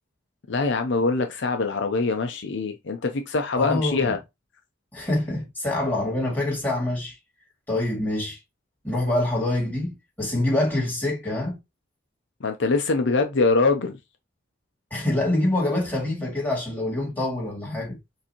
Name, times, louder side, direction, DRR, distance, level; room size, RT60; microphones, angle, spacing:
voice 1, 0.5-4.2 12.4-14.0, left 3 dB, 60° left, 0.6 m, -23 dB
voice 2, 3.6-4.2 4.9-7.2 7.7-8.4 8.8-11.6 14.9-18.0, left 1 dB, 10° left, 2.2 m, -25 dB
6.6 x 2.7 x 2.9 m
head